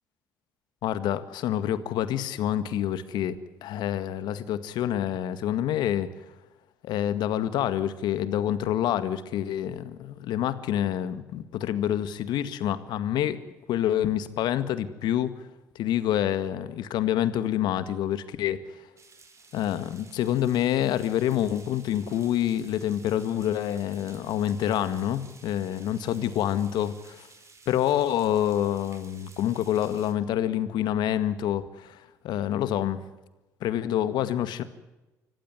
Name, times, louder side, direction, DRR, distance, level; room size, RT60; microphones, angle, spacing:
voice 1, 0.8-3.4 3.6-6.1 6.8-13.4 13.7-15.3 15.8-18.6 19.5-27.3 27.7-33.0 33.6-34.6, left 11 dB, 70° left, 13 dB, 1.9 m, -27 dB
sound 1, 19.0-30.1, right 4 dB, 40° right, 5.1 m, -54 dB
25.5 x 15.0 x 9.7 m, 1.1 s
hypercardioid pair, 65°, 8 cm